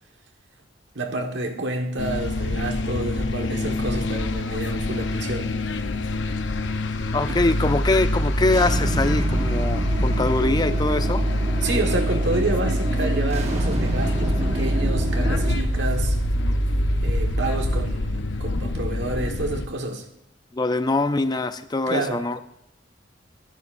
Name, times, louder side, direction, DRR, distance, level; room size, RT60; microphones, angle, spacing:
voice 1, 0.9-5.5 7.3-7.4 11.6-16.2 17.0-20.1 21.9-22.2, right 2 dB, 70° right, 4 dB, 1.5 m, -29 dB
sound 1, 2.0-19.7, left 2 dB, 70° left, 0.8 m, -28 dB
voice 2, 7.1-11.2 20.5-22.4, left 2 dB, 20° left, 11 dB, 0.4 m, -23 dB
sound 2, 7.3-17.9, right 1 dB, 10° right, 5.0 m, -25 dB
sound 3, 8.5-15.6, right 1 dB, 35° right, 1.4 m, -30 dB
22.5 x 11.0 x 2.6 m, 0.85 s
head